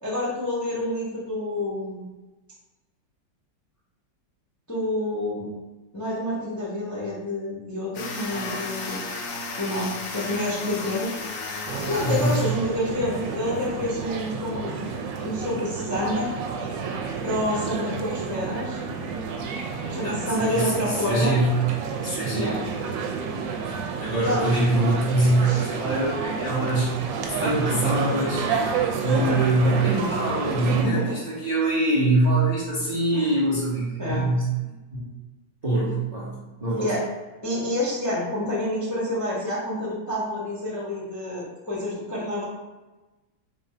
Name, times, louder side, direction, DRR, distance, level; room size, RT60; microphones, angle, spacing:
voice 1, 0.0-2.0 4.7-5.5 5.9-9.0 9.6-11.1 11.9-14.8 15.2-16.3 17.2-18.8 19.9-21.3 22.3-22.6 24.2-24.4 25.4-25.6 29.1-29.4 29.6-29.9 30.8-31.1 33.1-33.3 34.0-34.2 36.8-37.0 37.4-42.4, left 1 dB, 20° left, -7 dB, 0.4 m, -28 dB
sound 1, 7.9-13.1, left 3 dB, 70° left, 0.7 m, -34 dB
sound 2, 11.7-30.8, right 5 dB, 85° right, 1.3 m, -30 dB
voice 2, 12.0-12.4 20.0-21.6 22.0-22.7 24.0-26.9 27.3-28.5 29.0-35.1 35.6-36.9, right 2 dB, 40° right, -8 dB, 0.5 m, -24 dB
4.2 x 2.2 x 3.7 m, 1.2 s
omnidirectional pair, 2.0 m